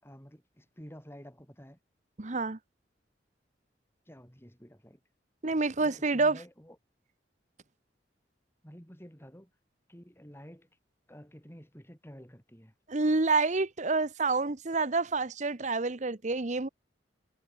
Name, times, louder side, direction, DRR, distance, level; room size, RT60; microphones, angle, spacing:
voice 1, 0.0-1.8 4.1-5.0 5.8-6.8 8.6-9.5 9.9-10.7 11.1-12.7, equal, 15° left, 7.2 m, -50 dB
voice 2, 2.2-2.6 5.4-6.4 12.9-16.7, right 3 dB, 40° right, 1.0 m, -28 dB
head